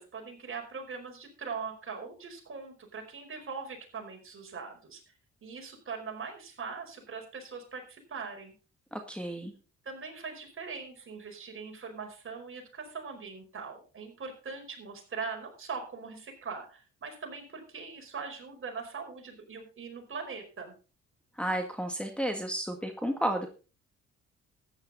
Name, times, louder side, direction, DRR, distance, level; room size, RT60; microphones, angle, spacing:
voice 1, 0.0-5.0 5.4-8.5 9.8-20.7, right 5 dB, 45° right, 3 dB, 4.9 m, -41 dB
voice 2, 8.9-9.5 21.4-23.5, right 1 dB, 5° left, 3 dB, 1.8 m, -32 dB
13.5 x 9.8 x 4.1 m, 0.34 s
cardioid pair, 90°, 30 cm